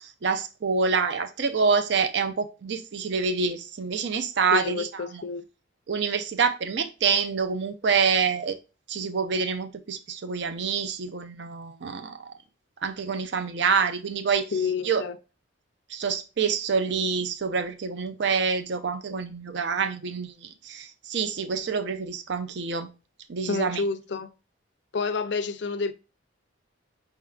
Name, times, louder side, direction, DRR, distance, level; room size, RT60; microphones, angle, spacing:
voice 1, 0.0-4.9 5.1-5.2 5.9-8.5 8.9-12.3 12.8-14.5 14.8-15.0 15.9-22.9 23.3-23.8, right 5 dB, 55° right, 0.5 m, -27 dB
voice 2, 4.5-5.4 14.5-15.2 23.5-24.3 24.9-25.9, left 5 dB, 60° left, 0.4 m, -29 dB
5.4 x 3.5 x 2.3 m
head